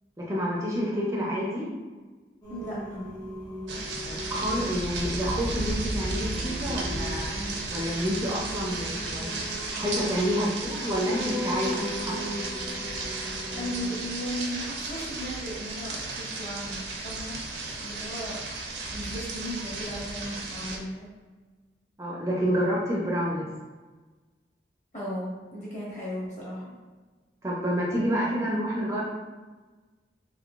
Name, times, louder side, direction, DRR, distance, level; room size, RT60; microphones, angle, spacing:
voice 1, 0.2-1.7 4.0-12.1 22.0-23.5 27.4-29.0, equal, 15° right, -4 dB, 0.4 m, -29 dB
Singing, 2.4-14.1, equal, 20° left, 0.7 m, -39 dB
voice 2, 2.5-3.1 13.5-17.3 17.8-18.4 18.9-21.1 24.9-26.7, equal, 40° left, -7 dB, 1.3 m, -36 dB
sound 1, 3.7-20.8, right 2 dB, 85° right, 0.6 m, -34 dB
3.7 x 3.1 x 2.4 m, 1.3 s
head